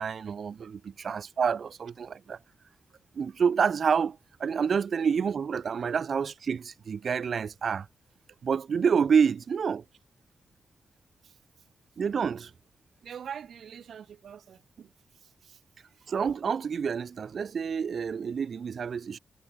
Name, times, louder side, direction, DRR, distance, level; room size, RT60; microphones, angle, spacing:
voice 1, 0.0-2.4 3.1-7.9 8.4-9.8 12.0-12.5 16.1-19.2, right 6 dB, 55° right, 1.3 m, -28 dB
voice 2, 13.0-14.9 15.4-15.6, right 8 dB, 80° right, 1.7 m, -43 dB
wide cardioid pair, 170°, 0 cm